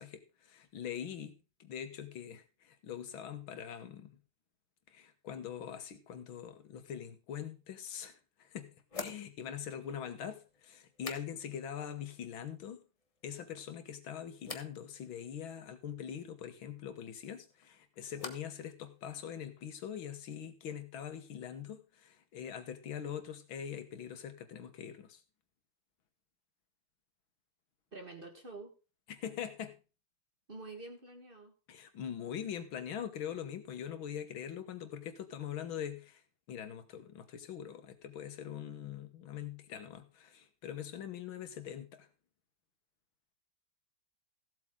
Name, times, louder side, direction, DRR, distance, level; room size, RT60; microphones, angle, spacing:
voice 1, 0.0-1.4 1.6-4.1 4.9-12.8 13.2-25.2 29.1-29.8 31.7-36.2 36.5-42.1, left 9 dB, 85° left, 2.0 m, -43 dB
sound 1, 7.6-7.7 8.9-11.7 12.0-12.6 13.0-13.6 14.4-14.8 17.2-18.6 18.9-19.5, left 4 dB, 25° left, 0.7 m, -49 dB
voice 2, 27.9-28.7 30.5-31.5, right 2 dB, 30° right, 1.7 m, -47 dB
15.5 x 7.8 x 3.8 m
omnidirectional pair, 2.1 m